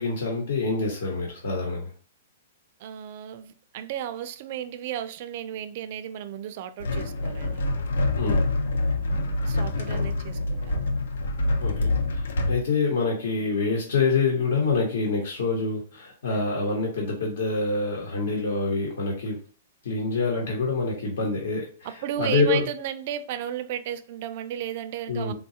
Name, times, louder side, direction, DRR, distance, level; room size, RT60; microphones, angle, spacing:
voice 1, 0.0-1.9 8.2-8.4 11.6-19.4 19.8-22.6 25.1-25.3, left 4 dB, 75° left, 1.1 m, -26 dB
voice 2, 2.8-7.7 9.1-10.9 21.8-25.3, right 10 dB, 40° right, 0.3 m, -34 dB
sound 1, 6.8-12.6, left 2 dB, 90° left, 0.5 m, -26 dB
3.7 x 2.3 x 2.7 m
hypercardioid pair, 170°, 0 cm